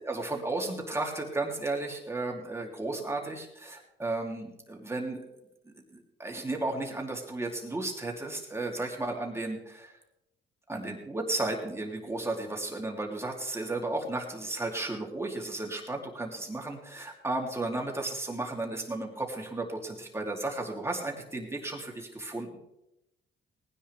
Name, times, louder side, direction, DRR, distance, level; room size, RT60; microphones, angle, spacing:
voice 1, 0.0-5.2 5.6-9.9 10.7-22.6, right 2 dB, 15° right, 0 dB, 3.0 m, -34 dB
18.5 x 10.0 x 3.4 m, 0.85 s
cardioid pair, 90°, 20 cm